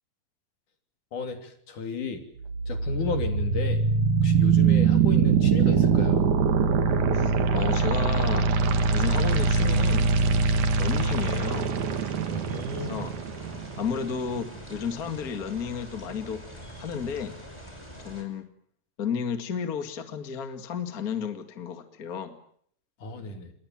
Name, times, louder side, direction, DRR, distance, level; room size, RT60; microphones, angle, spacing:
voice 1, 1.1-2.2 2.7-3.8 4.2-6.3 12.3-12.9 23.0-23.5, left 3 dB, 65° left, 6 dB, 4.7 m, -33 dB
sound 1, 2.4-14.4, right 5 dB, 65° right, 3.1 m, -23 dB
voice 2, 7.1-8.5 8.9-10.1 10.8-11.7 12.7-13.1 13.8-16.4 16.8-17.4 18.0-18.5 19.0-22.4, left 7 dB, 30° left, 7 dB, 2.1 m, -32 dB
sound 2, 8.6-18.2, equal, 10° left, 5.7 m, -44 dB
28.0 x 23.0 x 7.5 m, 0.65 s
omnidirectional pair, 3.8 m